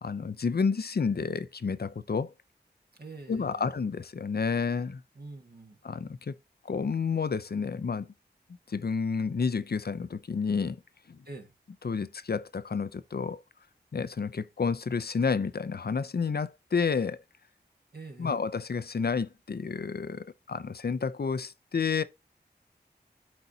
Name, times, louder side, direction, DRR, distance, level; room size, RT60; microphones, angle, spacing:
voice 1, 0.0-2.3 3.3-5.0 5.8-6.3 6.7-8.1 8.7-10.8 11.1-11.2 11.8-13.4 13.9-17.2 18.2-22.0, left 5 dB, 60° left, 0.6 m, -30 dB
voice 2, 3.0-3.8 5.1-5.8 11.2-11.5 17.9-18.4, right 3 dB, 60° right, 1.7 m, -45 dB
12.0 x 4.1 x 2.8 m
wide cardioid pair, 45°, 18 cm